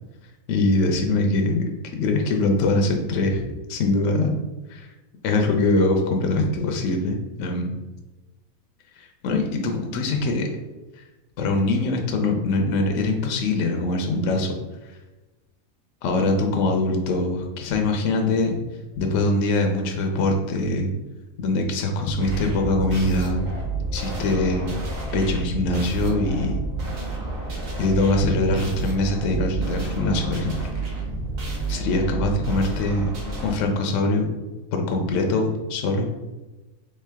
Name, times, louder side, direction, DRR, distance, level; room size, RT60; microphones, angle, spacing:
voice 1, 0.5-3.4 3.7-4.3 4.7-4.9 5.2-7.7 9.0-10.5 11.4-14.5 16.0-18.6 19.0-20.9 21.4-23.4 23.9-24.7 25.1-26.6 27.8-30.5 31.7-33.1 33.4-34.3 34.7-36.1, left 2 dB, 70° left, 3 dB, 0.8 m, -23 dB
sound 1, 22.2-33.5, right 3 dB, 70° right, 1.3 m, -29 dB
3.3 x 3.2 x 3.4 m, 1.1 s
omnidirectional pair, 1.5 m